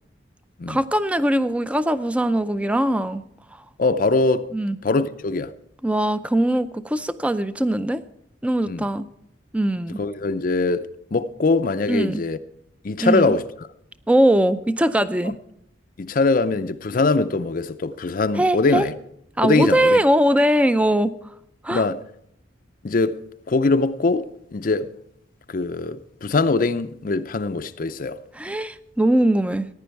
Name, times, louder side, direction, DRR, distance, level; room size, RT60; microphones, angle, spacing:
voice 1, 0.7-3.2 4.5-4.8 5.8-8.0 8.4-9.1 9.5-10.0 11.9-12.2 13.0-13.3 14.1-15.3 18.4-18.9 19.4-21.1 21.6-21.8 28.3-29.7, right 1 dB, 5° right, 0.4 m, -20 dB
voice 2, 3.8-4.5 4.8-5.5 8.7-8.8 10.0-12.4 12.8-13.4 16.0-18.9 19.4-20.0 21.7-22.0 22.8-23.2 23.5-24.9 25.5-28.2, left 3 dB, 45° left, 0.5 m, -22 dB
15.5 x 10.0 x 4.6 m
head